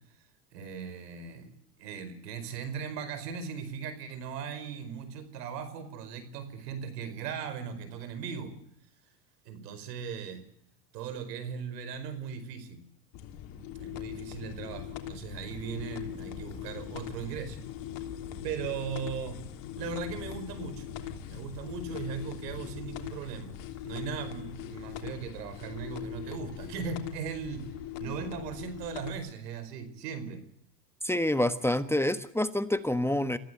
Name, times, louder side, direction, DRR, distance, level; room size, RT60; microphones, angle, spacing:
voice 1, 0.5-1.5 1.8-8.5 9.4-10.4 10.9-12.8 13.8-17.6 18.4-19.4 19.8-20.9 21.2-23.5 23.8-27.7 28.0-30.4, right 6 dB, 80° right, 11 dB, 5.1 m, -38 dB
sound 1, 13.1-29.1, left 10 dB, 65° left, 3.4 m, -41 dB
voice 2, 31.0-33.4, left 1 dB, 5° left, 11 dB, 1.3 m, -27 dB
27.0 x 15.5 x 8.1 m, 0.70 s
hypercardioid pair, 95°, 48 cm